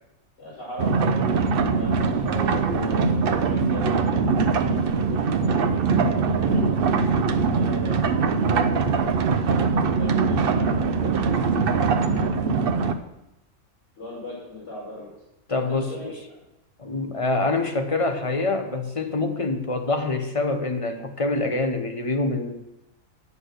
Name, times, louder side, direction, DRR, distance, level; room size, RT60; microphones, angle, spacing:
voice 1, 0.4-5.8 6.1-7.0 7.4-8.7 9.3-12.9 14.0-15.1 15.7-16.4, left 1 dB, 55° left, -13 dB, 5.8 m, -39 dB
sound 1, 0.8-12.9, right 5 dB, 55° right, 0.7 m, -22 dB
voice 2, 15.5-16.1 16.8-22.6, left 2 dB, 30° left, 6 dB, 0.7 m, -25 dB
9.7 x 8.4 x 6.3 m, 0.88 s
omnidirectional pair, 1.5 m